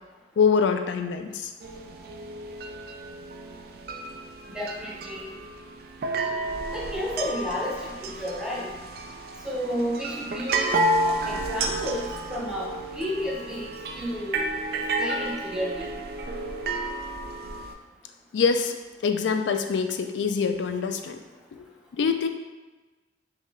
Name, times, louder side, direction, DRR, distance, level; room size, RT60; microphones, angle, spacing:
voice 1, 0.4-1.5 18.3-18.8 19.0-21.2 21.5-21.7 21.9-22.3, left 5 dB, 85° left, 7 dB, 0.4 m, -24 dB
sound 1, 1.6-17.7, right 2 dB, 55° right, 0.3 m, -31 dB
voice 2, 4.4-5.3 6.7-8.7 9.4-10.8 11.0-14.4 14.7-16.0, equal, 5° right, -4 dB, 0.7 m, -32 dB
3.7 x 3.2 x 3.2 m, 1.2 s
head